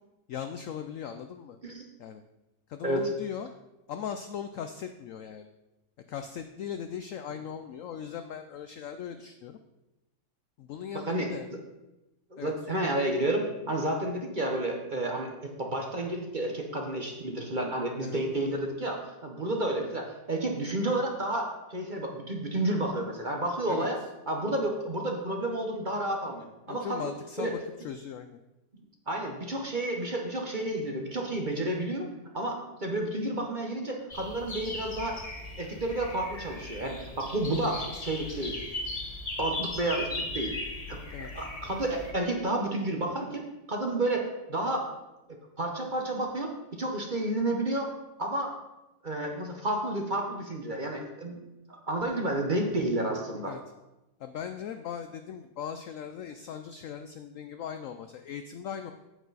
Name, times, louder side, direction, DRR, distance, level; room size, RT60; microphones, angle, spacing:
voice 1, 0.3-1.6 2.0-2.2 2.7-3.5 3.9-5.5 6.1-9.6 10.6-11.5 12.4-12.8 18.0-18.2 23.7-23.9 26.7-28.4 41.1-41.3 53.4-53.6 54.2-58.9, left 8 dB, 80° left, 8 dB, 0.7 m, -39 dB
voice 2, 12.3-15.3 15.6-24.0 24.3-27.1 27.4-27.5 29.1-32.1 32.3-35.2 35.6-38.6 39.4-40.5 40.9-44.9 45.3-47.9 48.2-48.5 49.0-51.4 51.7-53.6, right 1 dB, 35° right, 2 dB, 0.9 m, -31 dB
sound 1, 34.1-42.1, left 2 dB, 25° left, 0.9 m, -38 dB
9.2 x 8.2 x 4.0 m, 0.98 s
omnidirectional pair, 1.9 m